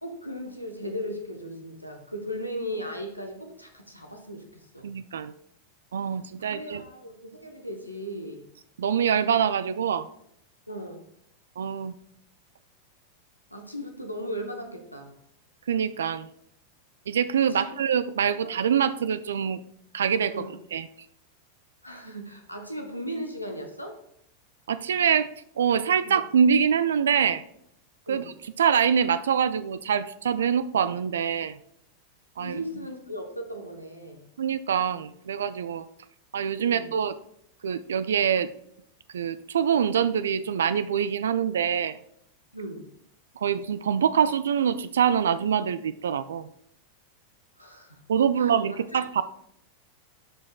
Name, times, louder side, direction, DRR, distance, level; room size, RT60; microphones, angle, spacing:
voice 1, 0.0-4.9 6.4-8.5 10.7-11.1 13.5-15.2 17.5-17.8 18.4-18.5 20.3-20.6 21.8-24.0 26.0-26.2 28.1-28.3 32.4-34.3 36.6-36.9 42.5-42.9 47.6-48.0 48.4-49.1, equal, 90° left, 2 dB, 0.9 m, -37 dB
voice 2, 4.8-5.3 5.9-6.8 8.8-10.1 11.6-11.9 15.7-16.3 17.1-19.6 19.9-20.3 20.7-20.9 24.7-25.3 25.6-27.4 28.1-28.2 28.6-31.6 32.4-32.5 34.4-35.9 36.3-37.1 37.6-38.5 39.1-42.0 43.4-46.5 48.1-49.2, right 7 dB, 65° right, 14 dB, 0.3 m, -24 dB
11.5 x 5.1 x 2.3 m, 0.72 s
figure-of-eight pair, 90°, 0 cm